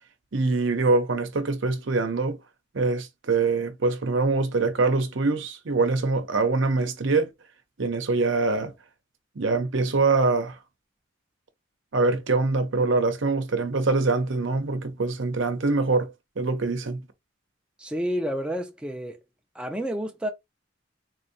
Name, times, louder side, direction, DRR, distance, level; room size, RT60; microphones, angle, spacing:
voice 1, 0.3-2.4 2.7-7.3 7.8-8.7 9.4-10.6 11.9-17.0, right 3 dB, 70° right, 0.7 m, -24 dB
voice 2, 17.8-19.2 19.5-20.3, equal, 5° right, 0.5 m, -30 dB
4.1 x 2.7 x 2.7 m
head